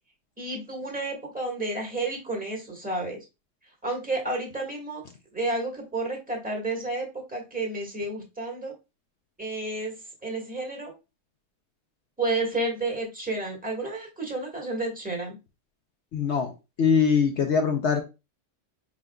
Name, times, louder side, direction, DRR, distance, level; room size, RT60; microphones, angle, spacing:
voice 1, 0.4-3.2 3.8-5.0 5.3-8.7 9.4-9.9 10.2-10.9 12.2-15.3, right 2 dB, 5° right, 0 dB, 1.2 m, -31 dB
voice 2, 16.1-18.0, left 6 dB, 60° left, 5 dB, 0.7 m, -23 dB
5.0 x 3.5 x 2.2 m, 0.26 s
omnidirectional pair, 1.6 m